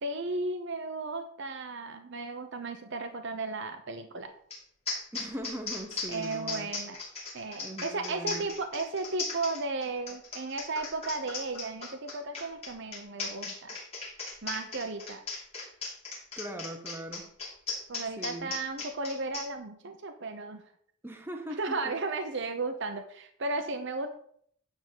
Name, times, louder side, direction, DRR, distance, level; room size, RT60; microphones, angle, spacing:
voice 1, 0.0-4.3 6.1-7.0 7.3-13.8 14.4-15.2 17.9-20.6 21.6-24.1, right 3 dB, 60° right, 6 dB, 0.9 m, -35 dB
sound 1, 4.5-4.6 4.9-19.5, left 4 dB, 30° left, 3.0 m, -37 dB
voice 2, 5.1-6.7 7.6-8.5 16.4-17.3 18.2-18.6 21.0-21.9, right 1 dB, 10° right, 3 dB, 0.9 m, -40 dB
10.5 x 3.9 x 6.7 m, 0.64 s
head